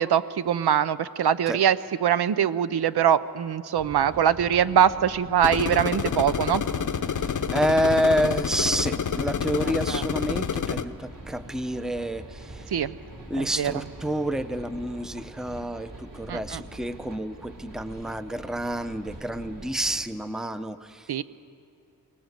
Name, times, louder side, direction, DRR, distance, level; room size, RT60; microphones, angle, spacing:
voice 1, 0.0-6.6 9.9-10.0 12.7-12.9 13.4-13.7 16.3-16.6 21.1-21.2, right 9 dB, 80° right, 15 dB, 0.7 m, -23 dB
sound 1, 3.7-20.0, right 1 dB, 55° right, 3.6 m, -44 dB
sound 2, 5.4-10.8, left 7 dB, 50° left, 0.7 m, -28 dB
voice 2, 7.1-12.7 13.3-21.2, equal, ahead, 11 dB, 0.6 m, -28 dB
24.0 x 19.5 x 8.0 m, 2.4 s
wide cardioid pair, 130°, 39 cm